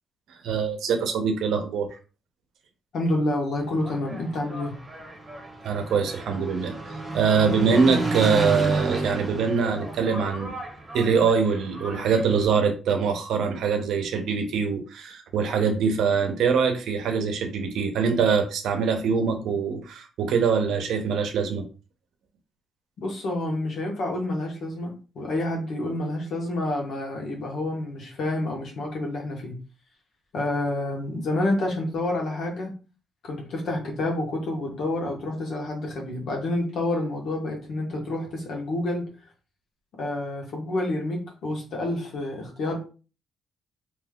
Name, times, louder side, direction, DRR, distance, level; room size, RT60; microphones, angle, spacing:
voice 1, 0.4-1.9 5.6-10.5 10.9-21.6, right 5 dB, 75° right, 5 dB, 0.7 m, -23 dB
voice 2, 2.9-4.7 23.0-29.5 30.3-32.7 33.2-39.1 40.0-42.8, left 1 dB, 70° left, 0 dB, 1.2 m, -28 dB
Engine, 3.6-12.5, right 2 dB, 25° right, 0.9 m, -32 dB
3.3 x 3.0 x 2.3 m, 0.34 s
supercardioid pair, 70°, 0 cm